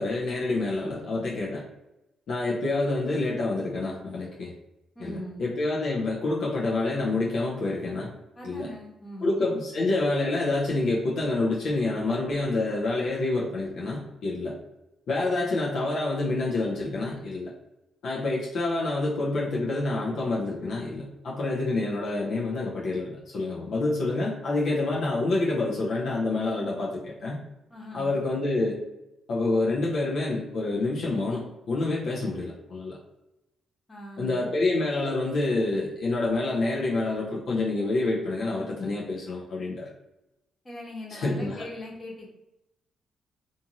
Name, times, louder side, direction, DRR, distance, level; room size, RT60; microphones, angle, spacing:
voice 1, 0.0-1.6 2.3-4.5 5.0-8.1 8.4-8.7 9.2-14.6 15.1-17.5 18.0-27.4 27.9-28.8 29.3-33.0 34.2-39.9 41.1-41.7, left 2 dB, 70° left, -4 dB, 0.6 m, -27 dB
voice 2, 4.9-5.4 8.4-9.3 27.7-28.1 33.9-34.5 40.6-42.3, left 1 dB, 30° left, -2 dB, 1.1 m, -40 dB
2.6 x 2.5 x 2.8 m, 0.91 s
supercardioid pair, 65°, 0 cm